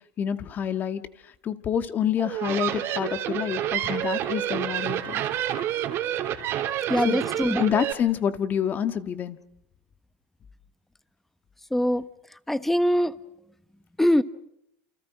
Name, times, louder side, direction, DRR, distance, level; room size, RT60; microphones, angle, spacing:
voice 1, 0.2-5.3 7.0-7.2 7.6-9.4, left 8 dB, 30° left, 10 dB, 1.8 m, -28 dB
sound 1, 2.2-7.9, right 11 dB, 45° right, 3.1 m, -28 dB
voice 2, 6.9-7.6 11.7-12.0 12.5-13.1 14.0-14.2, equal, 5° left, 13 dB, 1.2 m, -22 dB
29.5 x 28.0 x 5.0 m, 0.73 s
supercardioid pair, 130°, 6 cm